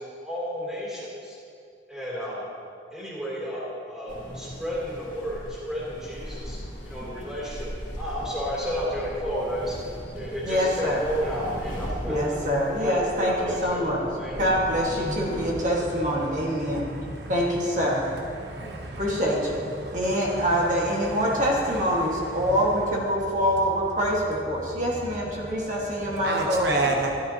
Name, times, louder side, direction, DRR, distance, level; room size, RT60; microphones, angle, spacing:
voice 1, 0.0-1.4 1.9-2.4 2.9-6.6 6.8-7.7 7.9-9.8 10.1-12.4 12.8-14.3, equal, 5° right, -7 dB, 2.8 m, -32 dB
sound 1, 4.1-15.5, equal, 45° left, 2.0 m, -38 dB
voice 2, 10.4-11.0 12.1-14.1 14.4-16.9 17.3-18.0 19.0-19.6 19.9-27.0, equal, 45° right, -4 dB, 1.6 m, -25 dB
voice 3, 16.6-17.3 18.4-19.0 19.8-20.4 22.4-22.5 26.2-27.2, right 2 dB, 70° right, 0 dB, 1.0 m, -29 dB
12.0 x 12.0 x 2.8 m, 2.4 s
head